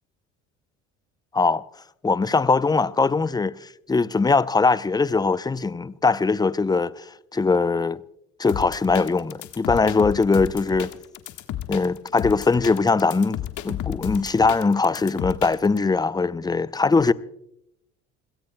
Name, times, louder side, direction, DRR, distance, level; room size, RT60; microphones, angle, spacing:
voice 1, 2.0-3.5 3.9-7.0 7.3-8.0 8.4-10.9 11.7-17.1, left 4 dB, 10° left, 0.5 m, -21 dB
sound 1, 8.5-15.8, left 12 dB, 55° left, 1.4 m, -32 dB
27.5 x 17.0 x 2.2 m
hypercardioid pair, 65°, 36 cm